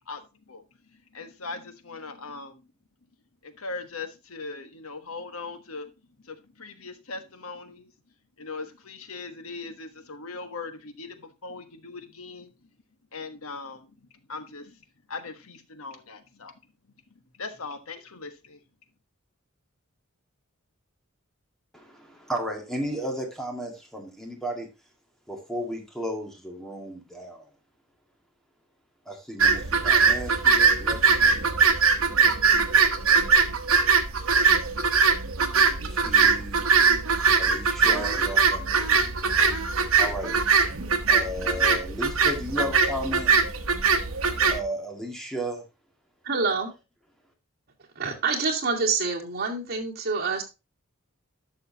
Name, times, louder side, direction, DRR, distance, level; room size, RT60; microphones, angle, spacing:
voice 1, 0.9-2.6 3.4-5.9 6.2-7.9 8.4-12.7 13.1-14.8 15.1-16.5 17.3-18.6, left 3 dB, 90° left, 9 dB, 1.3 m, -39 dB
voice 2, 21.7-24.7 25.3-27.4 29.1-31.5 35.9-36.7 37.4-38.7 40.0-40.3 41.1-43.3 44.5-45.6, equal, ahead, 1 dB, 2.0 m, -34 dB
sound 1, 29.4-44.6, right 5 dB, 75° right, 1.1 m, -21 dB
voice 3, 46.2-46.7 48.0-50.4, right 4 dB, 45° right, -1 dB, 2.3 m, -27 dB
11.5 x 6.5 x 2.8 m, 0.26 s
head